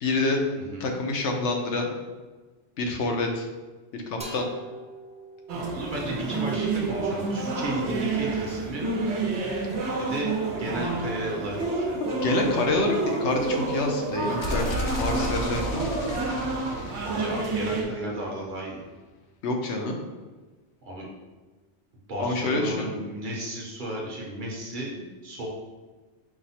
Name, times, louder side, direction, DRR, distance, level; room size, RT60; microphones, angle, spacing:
voice 1, 0.0-0.4 0.8-1.9 2.8-3.5 3.9-4.4 12.1-15.8 19.4-20.0 22.2-22.9, left 2 dB, 80° left, 2 dB, 1.0 m, -27 dB
voice 2, 0.5-0.9 5.7-8.9 10.0-12.0 15.1-15.9 17.0-18.8 20.8-21.1 22.1-25.5, right 1 dB, 50° right, -2 dB, 0.9 m, -34 dB
sound 1, 4.2-7.8, right 1 dB, 10° right, 0.4 m, -45 dB
sound 2, 5.5-17.8, right 3 dB, 80° right, 1.0 m, -29 dB
sound 3, 14.4-18.3, right 1 dB, 55° left, 0.5 m, -33 dB
4.8 x 2.1 x 4.1 m, 1.3 s
omnidirectional pair, 1.2 m